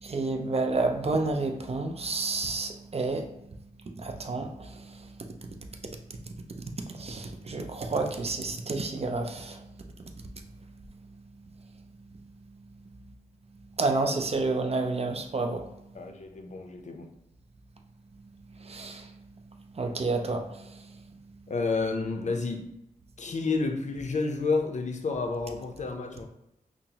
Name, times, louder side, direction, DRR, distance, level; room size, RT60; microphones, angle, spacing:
voice 1, 0.0-3.3 4.0-5.8 6.1-9.7 10.4-10.5 13.8-15.7 18.6-19.2 19.7-21.0, right 3 dB, 40° right, 5 dB, 0.5 m, -30 dB
voice 2, 15.9-17.1 21.5-22.7 23.2-26.3, left 3 dB, 50° left, 4 dB, 0.5 m, -30 dB
5.6 x 2.0 x 2.8 m, 0.84 s
cardioid pair, 65°, 15 cm